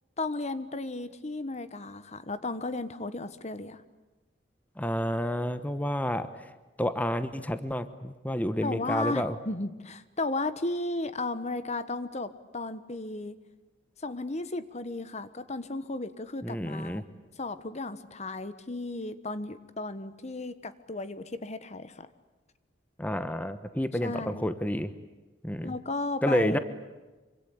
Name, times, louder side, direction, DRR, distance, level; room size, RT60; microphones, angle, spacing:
voice 1, 0.2-3.8 8.6-13.4 14.0-17.0 17.4-22.1 24.0-24.5 25.6-26.6, left 2 dB, 40° left, 13 dB, 1.2 m, -34 dB
voice 2, 4.8-6.5 6.8-9.3 16.4-17.0 23.0-24.9 25.4-25.7 26.2-26.6, equal, 10° left, 11 dB, 1.1 m, -29 dB
26.0 x 25.0 x 8.6 m, 1.2 s
head